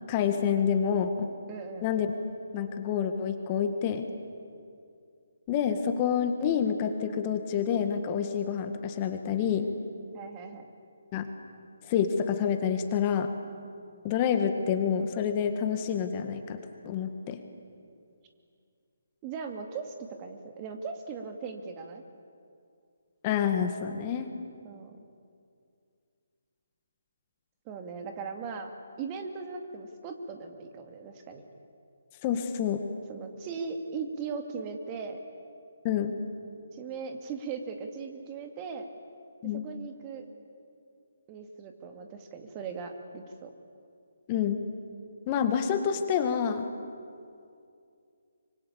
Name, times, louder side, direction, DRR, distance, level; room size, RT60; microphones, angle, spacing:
voice 1, 0.1-1.3 1.8-2.1 2.5-4.1 5.5-9.7 11.1-11.3 11.9-13.3 14.0-16.6 16.8-17.4 23.2-24.3 32.2-32.8 35.8-36.1 39.4-39.6 44.3-44.6 45.3-46.7, left 8 dB, 25° left, 7 dB, 1.8 m, -28 dB
voice 2, 1.5-1.9 10.1-10.7 19.2-22.0 24.6-25.0 27.7-28.7 29.0-31.4 33.1-35.2 36.7-38.9 39.5-40.3 41.3-43.5, right 5 dB, 25° right, 5 dB, 2.4 m, -39 dB
25.0 x 24.5 x 8.7 m, 2.4 s
figure-of-eight pair, 145°, 0 cm